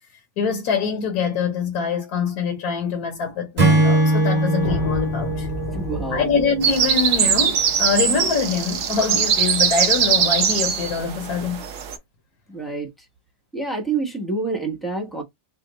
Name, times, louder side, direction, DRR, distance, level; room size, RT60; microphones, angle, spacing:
voice 1, 0.4-5.5 6.1-11.7, left 5 dB, 65° left, 1.3 m, -24 dB
Acoustic guitar / Strum, 3.6-7.0, right 2 dB, 40° right, 1.4 m, -21 dB
sound 1, 4.6-9.0, left 2 dB, 80° left, 1.6 m, -32 dB
voice 2, 5.7-6.2 12.5-12.9 13.5-15.2, right 3 dB, ahead, 0.5 m, -27 dB
sound 2, 6.6-12.0, right 7 dB, 60° right, 0.9 m, -21 dB
4.2 x 2.1 x 3.9 m
omnidirectional pair, 1.9 m